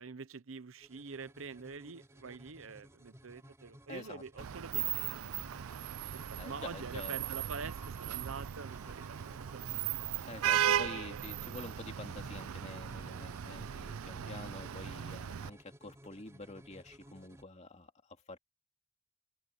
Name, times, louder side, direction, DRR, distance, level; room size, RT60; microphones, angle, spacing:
voice 1, 0.0-5.3 6.1-9.6 14.0-14.4, right 5 dB, 65° right, 0.8 m, -46 dB
sound 1, 0.8-17.4, right 1 dB, 15° right, 3.0 m, -56 dB
voice 2, 3.9-4.2 6.4-7.2 10.2-18.4, left 2 dB, 30° left, 2.6 m, -48 dB
Vehicle horn car horn honking / Traffic noise roadway noise, 4.4-15.5, right 10 dB, 85° right, 0.5 m, -37 dB
head